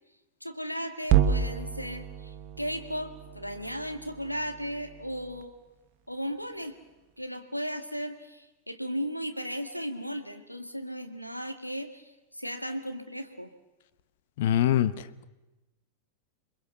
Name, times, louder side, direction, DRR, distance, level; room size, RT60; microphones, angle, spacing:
voice 1, 0.4-5.5 6.1-6.8 7.2-13.5, equal, 90° left, 7 dB, 1.8 m, -36 dB
sound 1, 1.0-5.4, right 9 dB, 40° right, 1.4 m, -30 dB
voice 2, 14.4-14.9, left 11 dB, 55° left, 15 dB, 0.9 m, -22 dB
27.5 x 22.5 x 7.0 m, 1.1 s
figure-of-eight pair, 90°, 0 cm